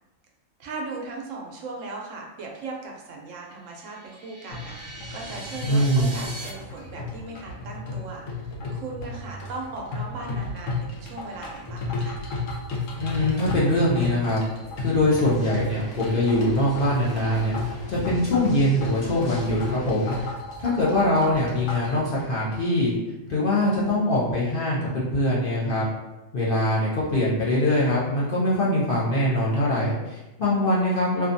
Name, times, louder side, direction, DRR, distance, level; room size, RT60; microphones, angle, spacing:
voice 1, 0.6-12.2, right 3 dB, 75° right, -1 dB, 0.9 m, -38 dB
sound 1, 3.7-6.5, right 1 dB, 45° right, 0.5 m, -40 dB
sound 2, 4.5-22.0, left 2 dB, 75° left, 1.0 m, -34 dB
voice 2, 5.6-6.1 13.0-14.4 14.8-17.5 17.9-20.1 20.6-22.9 23.3-25.8 26.3-31.3, left 1 dB, 55° left, -7 dB, 0.7 m, -23 dB
sound 3, 15.1-20.3, left 1 dB, 35° left, 1.2 m, -42 dB
2.6 x 2.2 x 2.5 m, 1.0 s
omnidirectional pair, 1.4 m